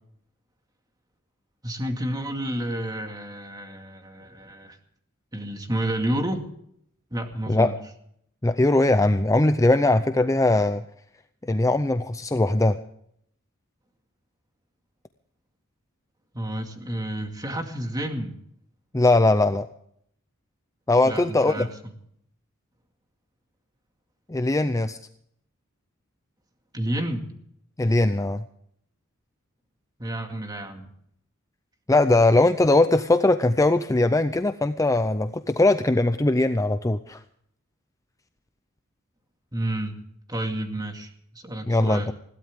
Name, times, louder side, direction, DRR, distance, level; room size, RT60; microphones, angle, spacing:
voice 1, 1.6-4.8 5.3-6.5 7.1-7.7 16.3-18.4 21.0-21.7 26.7-27.3 30.0-30.8 39.5-40.0 40.3-42.1, right 1 dB, 20° right, 4 dB, 2.2 m, -30 dB
voice 2, 8.4-10.8 11.5-12.8 18.9-19.7 20.9-21.7 24.3-25.0 27.8-28.4 31.9-37.2 41.7-42.0, left 2 dB, 15° left, 10 dB, 0.6 m, -20 dB
21.0 x 16.0 x 3.7 m, 0.68 s
head